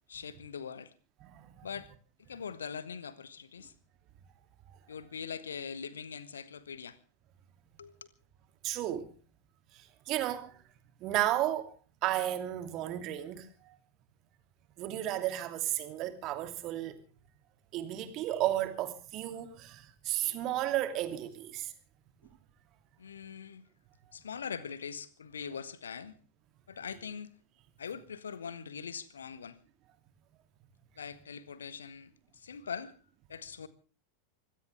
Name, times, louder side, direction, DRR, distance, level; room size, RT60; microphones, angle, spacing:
voice 1, 0.1-0.9 1.6-1.9 2.3-3.7 4.9-7.0 7.8-7.9 23.0-23.7 24.1-26.2 26.7-27.3 27.8-29.6 31.0-32.9 33.3-33.7, left 6 dB, 70° left, 1.5 m, -42 dB
voice 2, 1.2-1.7 4.7-4.8 8.6-9.1 9.7-10.6 11.0-11.7 12.0-13.8 14.8-17.0 17.7-21.7, right 13 dB, 40° right, 2.8 m, -33 dB
24.5 x 17.0 x 3.5 m
figure-of-eight pair, 90°, 0 cm